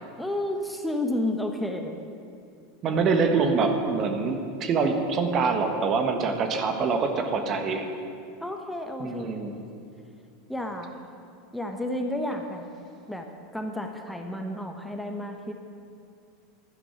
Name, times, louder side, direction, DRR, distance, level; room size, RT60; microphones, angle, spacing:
voice 1, 0.2-2.0 8.4-9.4 10.5-10.9 11.5-12.6 13.1-15.5, left 1 dB, 5° left, 3 dB, 1.1 m, -31 dB
voice 2, 2.8-7.9 9.0-9.5, right 4 dB, 40° right, 6 dB, 1.3 m, -25 dB
11.5 x 10.5 x 5.9 m, 2.5 s
hypercardioid pair, 90°, 0 cm